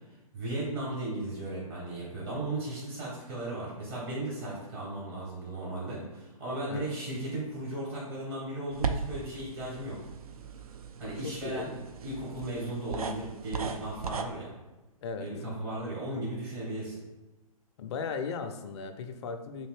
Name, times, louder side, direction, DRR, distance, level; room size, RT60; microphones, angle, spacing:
voice 1, 0.3-10.0 11.0-11.7 12.0-14.5 15.2-17.0, right 1 dB, 45° right, -5 dB, 1.1 m, -36 dB
sound 1, 8.7-14.2, right 5 dB, 75° right, 0.4 m, -37 dB
voice 2, 11.2-11.7 15.0-15.3 17.8-19.7, left 5 dB, 50° left, 7 dB, 0.4 m, -36 dB
3.4 x 2.7 x 3.2 m, 1.1 s
figure-of-eight pair, 125°, 19 cm